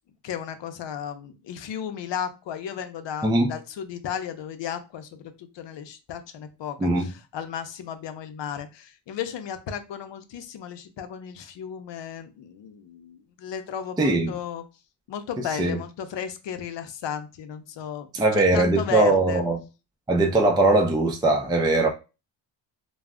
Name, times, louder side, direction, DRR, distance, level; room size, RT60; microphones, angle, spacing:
voice 1, 0.2-14.6 15.1-18.1 18.3-19.4, left 8 dB, 65° left, 0.6 m, -34 dB
voice 2, 14.0-14.3 15.6-15.8 18.1-19.6 20.1-21.9, right 2 dB, 10° right, 0.4 m, -20 dB
2.3 x 2.0 x 3.5 m
cardioid pair, 110°, 46 cm